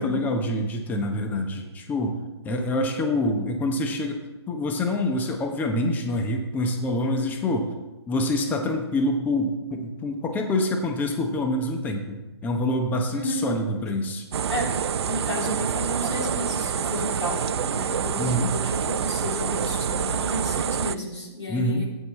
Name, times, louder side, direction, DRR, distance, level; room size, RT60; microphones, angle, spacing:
voice 1, 0.0-2.2 2.4-7.7 8.1-14.3 18.2-18.5 21.5-21.8, left 1 dB, 10° left, 3 dB, 0.9 m, -26 dB
voice 2, 13.1-13.5 14.5-14.7 15.0-21.9, left 1 dB, 85° left, -3 dB, 3.3 m, -32 dB
sound 1, 14.3-21.0, right 8 dB, 65° right, 0.4 m, -27 dB
14.0 x 9.1 x 3.2 m, 1.1 s
figure-of-eight pair, 135°, 14 cm